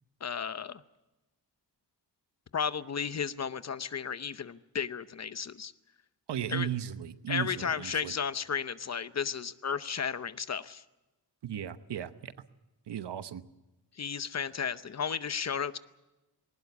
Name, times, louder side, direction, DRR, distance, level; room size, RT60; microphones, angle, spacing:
voice 1, 0.2-0.8 2.5-5.7 6.5-6.7 7.3-10.8 13.9-15.8, left 7 dB, 40° left, 14 dB, 0.8 m, -34 dB
voice 2, 6.3-8.1 11.4-12.3 12.9-13.4, right 9 dB, 85° right, 12 dB, 1.1 m, -36 dB
20.5 x 19.0 x 8.3 m, 1.0 s
wide cardioid pair, 170°, 41 cm